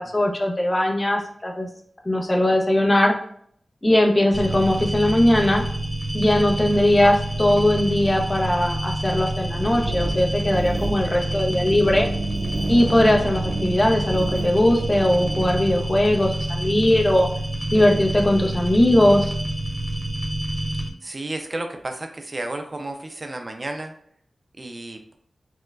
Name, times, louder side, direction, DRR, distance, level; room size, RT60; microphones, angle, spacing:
voice 1, 0.0-1.7 2.0-3.1 3.8-5.6 6.1-12.1 12.7-17.3 17.7-19.3, left 1 dB, 30° left, 1 dB, 0.6 m, -19 dB
sound 1, 4.3-20.9, right 1 dB, 15° right, 1.0 m, -27 dB
sound 2, 9.5-15.5, right 2 dB, 80° right, 0.7 m, -31 dB
voice 2, 21.0-23.9 24.6-25.1, right 2 dB, 40° right, 5 dB, 0.5 m, -32 dB
4.4 x 2.2 x 2.4 m, 0.64 s
cardioid pair, 55°, 0 cm